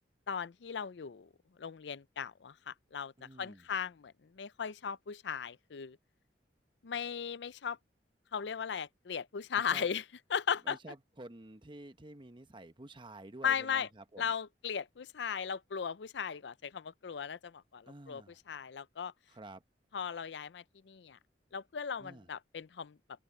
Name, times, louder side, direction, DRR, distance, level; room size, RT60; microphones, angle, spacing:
voice 1, 0.3-1.3 1.6-6.0 6.8-7.8 8.3-10.0 10.3-10.8 13.4-13.9 14.2-19.1 19.9-21.2 21.5-23.0, left 7 dB, 80° left, 0.5 m, -37 dB
voice 2, 3.2-3.7 9.7-9.9 10.6-14.3 17.9-18.4 19.3-19.6 22.0-22.3, right 2 dB, 30° right, 1.1 m, -50 dB
open air
head